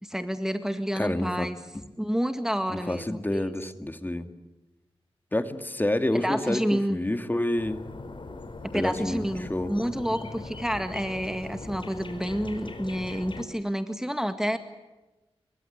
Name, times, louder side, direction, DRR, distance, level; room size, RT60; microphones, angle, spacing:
voice 1, 0.0-1.6 2.0-3.5 6.1-7.0 8.6-14.6, equal, 5° right, 8 dB, 1.9 m, -29 dB
voice 2, 0.9-1.5 1.7-1.8 2.7-4.3 5.3-7.8 8.7-9.2 9.5-9.7, left 1 dB, 20° left, 8 dB, 2.2 m, -28 dB
sound 1, 7.6-13.4, left 3 dB, 50° left, 4.7 m, -40 dB
29.5 x 23.5 x 8.1 m, 1.1 s
wide cardioid pair, 95°, 11 cm